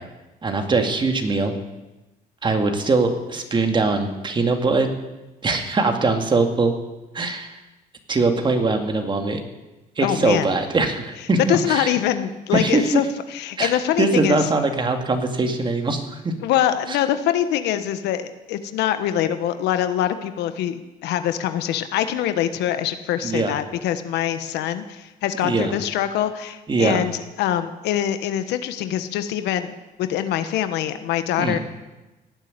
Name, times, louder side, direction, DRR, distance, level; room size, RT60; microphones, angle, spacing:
voice 1, 0.4-1.5 2.4-4.9 5.4-6.8 7.1-7.6 8.1-9.4 10.0-11.9 12.5-13.0 13.6-16.3 16.9-17.0 23.2-23.5 25.4-25.8 26.7-27.1 31.4-31.6, right 3 dB, 30° right, 5 dB, 2.2 m, -22 dB
voice 2, 10.0-10.5 11.5-14.4 16.4-27.1 27.4-29.7 30.0-31.6, left 11 dB, 85° left, 10 dB, 1.3 m, -24 dB
17.5 x 7.7 x 9.8 m, 1.1 s
cardioid pair, 110°, 17 cm